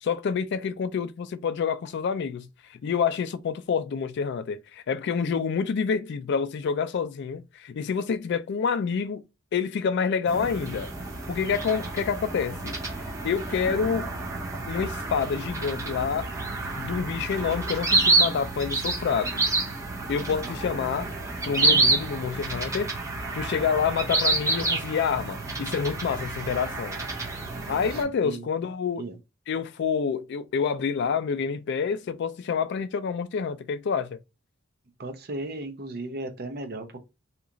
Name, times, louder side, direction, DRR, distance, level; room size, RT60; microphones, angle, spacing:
voice 1, 0.0-2.5 2.8-9.2 9.5-10.9 11.3-12.8 13.2-14.1 14.7-16.3 16.8-19.4 20.1-21.1 21.5-22.9 23.3-27.0 27.7-29.0 29.5-34.2, left 6 dB, 60° left, 0.3 m, -28 dB
sound 1, 10.3-28.0, right 3 dB, 15° right, 0.7 m, -28 dB
voice 2, 27.5-28.5 29.0-29.2 35.0-37.0, right 2 dB, 50° right, 0.7 m, -36 dB
2.9 x 2.4 x 3.8 m
head